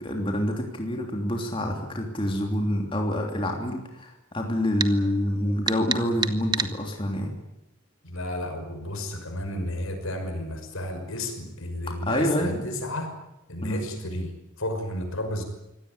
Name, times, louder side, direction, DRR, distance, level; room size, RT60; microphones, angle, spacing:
voice 1, 0.0-7.3 11.9-12.6 13.6-13.9, left 1 dB, 25° left, 2 dB, 3.1 m, -27 dB
sound 1, 4.8-4.9 5.7-6.7, right 5 dB, 20° right, 1.1 m, -27 dB
voice 2, 8.0-13.1 13.5-15.4, left 1 dB, 75° left, 6 dB, 5.9 m, -32 dB
24.0 x 17.5 x 9.7 m, 0.93 s
head